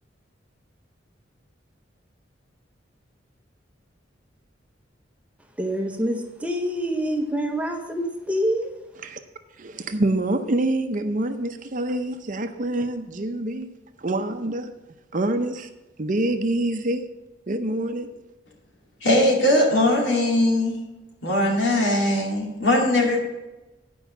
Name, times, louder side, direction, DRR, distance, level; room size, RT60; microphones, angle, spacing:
voice 1, 5.6-8.7, equal, 5° right, 3 dB, 0.7 m, -26 dB
voice 2, 9.6-13.7 14.0-14.7 15.1-15.7 16.0-17.0 17.5-18.1, right 1 dB, 45° right, 8 dB, 0.6 m, -26 dB
voice 3, 19.0-20.8 21.2-23.2, left 1 dB, 75° left, 0 dB, 2.3 m, -20 dB
9.1 x 5.4 x 6.9 m, 1.1 s
head